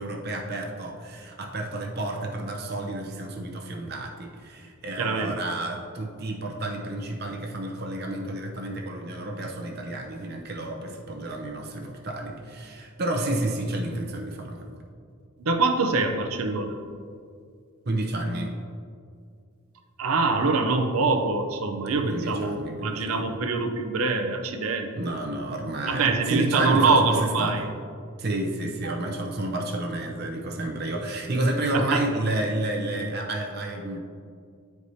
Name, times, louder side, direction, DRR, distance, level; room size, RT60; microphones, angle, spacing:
voice 1, 0.0-14.8 17.8-18.6 22.1-23.4 24.9-27.7 28.2-34.0, right 1 dB, 50° right, 2 dB, 0.7 m, -30 dB
voice 2, 5.0-5.3 15.4-16.8 20.0-25.1 25.9-27.6 28.8-28.9 31.7-32.0, right 3 dB, 90° right, 5 dB, 0.6 m, -24 dB
9.6 x 4.6 x 2.7 m, 2.2 s
head